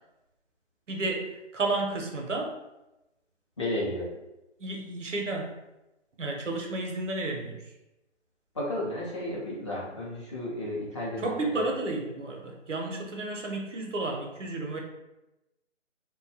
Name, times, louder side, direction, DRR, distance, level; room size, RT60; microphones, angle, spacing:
voice 1, 0.9-2.5 4.6-5.5 6.2-7.6 11.2-14.8, right 2 dB, 80° right, 1 dB, 0.7 m, -32 dB
voice 2, 3.6-4.1 8.5-11.6, left 1 dB, 25° left, -7 dB, 0.6 m, -33 dB
2.6 x 2.2 x 2.7 m, 0.95 s
figure-of-eight pair, 145°, 36 cm